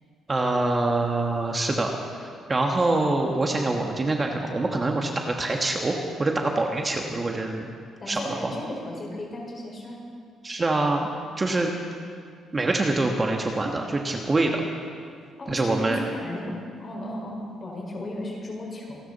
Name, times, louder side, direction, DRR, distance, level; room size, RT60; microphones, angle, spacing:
voice 1, 0.3-7.7 8.1-8.5 10.4-11.1 11.4-11.7 12.5-14.7 15.5-16.0, right 2 dB, 25° right, 2 dB, 1.4 m, -25 dB
voice 2, 8.0-10.0 15.4-19.0, left 1 dB, 35° left, -2 dB, 5.1 m, -35 dB
27.0 x 12.5 x 4.2 m, 2.2 s
cardioid pair, 105°, 0 cm